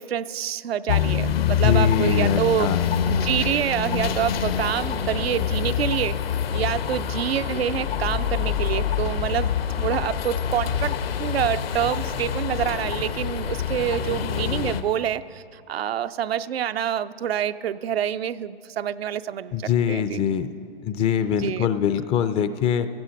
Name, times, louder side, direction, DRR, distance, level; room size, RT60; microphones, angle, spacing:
voice 1, 0.0-2.7 3.1-6.2 6.5-19.5 19.9-20.2 21.3-21.7, right 10 dB, 85° right, 12 dB, 0.6 m, -27 dB
sound 1, 0.9-14.8, left 8 dB, 75° left, 1.2 m, -25 dB
voice 2, 1.5-2.8 19.5-20.5 20.8-22.9, left 9 dB, 20° left, 12 dB, 0.4 m, -23 dB
16.5 x 14.0 x 5.2 m, 2.4 s
hypercardioid pair, 125°, 30 cm